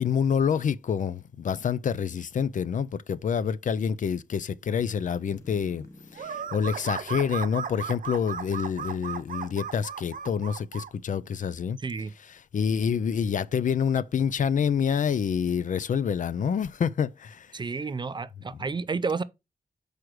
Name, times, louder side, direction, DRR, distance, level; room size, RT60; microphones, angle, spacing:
voice 1, 0.0-5.8 6.1-11.8 12.5-17.5, left 7 dB, 60° left, 0.4 m, -27 dB
sound 1, 5.2-8.6 9.0-9.1, left 2 dB, 20° left, 1.0 m, -54 dB
sound 2, 6.1-10.9, right 7 dB, 65° right, 0.7 m, -35 dB
voice 2, 11.8-12.1 17.5-19.2, right 4 dB, 30° right, 0.4 m, -31 dB
6.3 x 4.9 x 4.6 m
wide cardioid pair, 145°, 15 cm